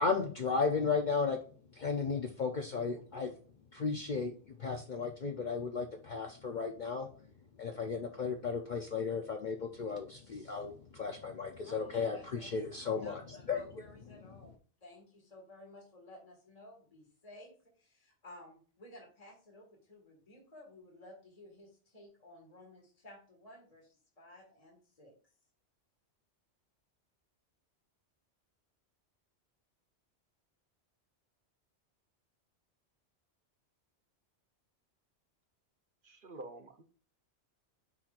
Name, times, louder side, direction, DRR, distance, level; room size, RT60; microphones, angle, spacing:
voice 1, 0.0-1.4 1.7-3.3 3.7-7.1 7.6-13.8, left 5 dB, 50° left, 4 dB, 0.7 m, -34 dB
voice 2, 11.6-14.5 14.8-25.1, left 1 dB, 30° left, -1 dB, 2.0 m, -55 dB
voice 3, 36.0-36.8, right 2 dB, 50° right, 5 dB, 1.1 m, -48 dB
9.9 x 4.4 x 2.5 m, 0.41 s
omnidirectional pair, 1.2 m